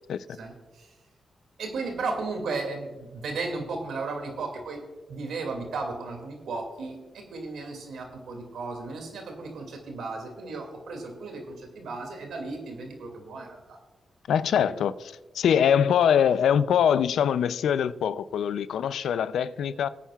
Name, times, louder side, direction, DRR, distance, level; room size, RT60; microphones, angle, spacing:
voice 1, 0.4-0.9 1.6-4.8 5.1-13.8, right 3 dB, 85° right, 2.3 m, -35 dB
voice 2, 14.3-19.9, left 8 dB, 85° left, 0.4 m, -23 dB
20.5 x 9.1 x 2.4 m
cardioid pair, 60°, 0 cm